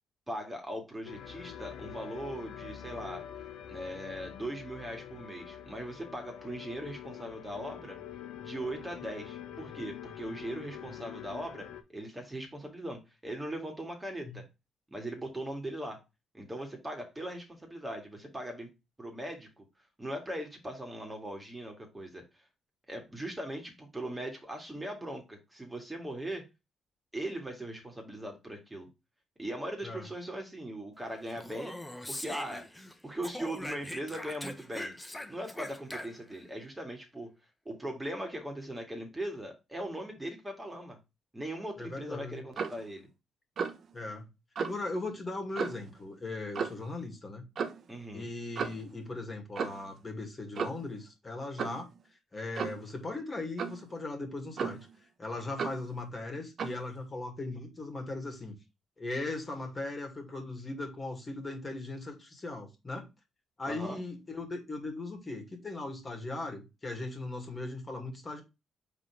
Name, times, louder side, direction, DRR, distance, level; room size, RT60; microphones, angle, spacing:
voice 1, 0.3-3.2 3.7-8.0 8.4-14.4 14.9-16.0 16.3-18.7 19.0-19.6 20.0-22.2 22.9-26.5 27.1-28.9 29.4-31.8 32.1-32.7 33.0-35.0 35.3-37.3 37.7-41.0 41.3-43.1 47.9-48.3 63.7-64.0, right 1 dB, 15° right, 2.0 m, -39 dB
sound 1, 1.0-11.8, left 9 dB, 85° left, 1.1 m, -45 dB
Speech, 31.3-32.9 33.2-36.4, left 1 dB, 10° left, 1.0 m, -42 dB
voice 2, 41.8-42.4 43.9-44.3 44.6-47.4 48.1-51.9 52.3-54.8 55.2-58.6 59.0-63.1 63.6-68.4, left 2 dB, 30° left, 2.2 m, -38 dB
Clock, 42.5-42.8 43.6-43.9 44.5-44.8 45.5-45.9 46.5-46.9 47.5-47.8 48.5-48.9 49.5-49.9 50.5-50.9 51.6-51.8 52.5-52.8 53.6-53.8 54.6-54.9 55.6-55.8 56.6-56.8, right 6 dB, 55° right, 0.9 m, -35 dB
5.4 x 3.9 x 4.7 m
cardioid pair, 90°, 0 cm